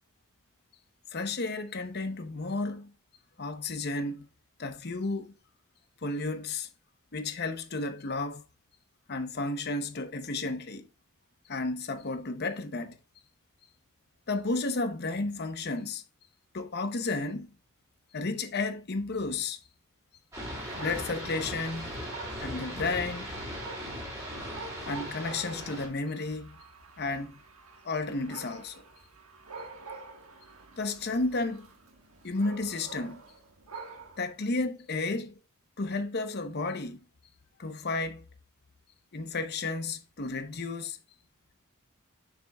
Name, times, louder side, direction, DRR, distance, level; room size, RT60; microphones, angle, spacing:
voice 1, 1.1-2.9 3.4-4.3 4.6-5.3 6.0-6.7 7.1-8.4 9.1-10.9 11.5-12.9 14.3-16.0 16.5-17.5 18.1-19.6 20.7-21.9 22.4-23.3 24.9-26.6 27.0-27.4 27.8-28.8 30.8-31.7 32.2-33.2 34.2-35.3 35.8-37.0 37.6-38.2 39.1-41.0, left 3 dB, 50° left, 0.8 m, -32 dB
sound 1, 20.3-25.9, equal, 15° right, 2.6 m, -38 dB
Dog, 20.6-34.3, right 4 dB, 80° right, 1.5 m, -47 dB
7.1 x 6.1 x 2.3 m
head